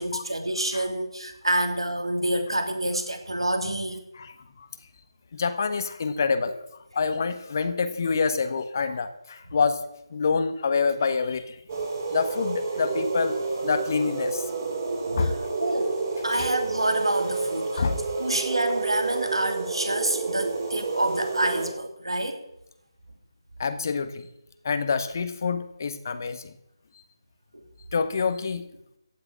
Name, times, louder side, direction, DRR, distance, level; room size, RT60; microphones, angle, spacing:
voice 1, 0.0-4.0 15.0-17.8 18.1-22.4 27.5-27.6, right 1 dB, 90° right, 6 dB, 3.1 m, -28 dB
voice 2, 4.1-4.7 5.3-6.6 6.9-9.8 10.1-11.6 12.1-13.4 13.6-14.5 15.2-15.4 16.3-16.5 17.8-18.0 23.6-24.3 24.6-26.5 27.9-28.6, left 5 dB, 40° left, 10 dB, 1.3 m, -26 dB
sound 1, 11.7-21.7, right 4 dB, 40° right, 4.1 m, -30 dB
15.5 x 6.7 x 9.9 m, 0.81 s
figure-of-eight pair, 160°, 3 cm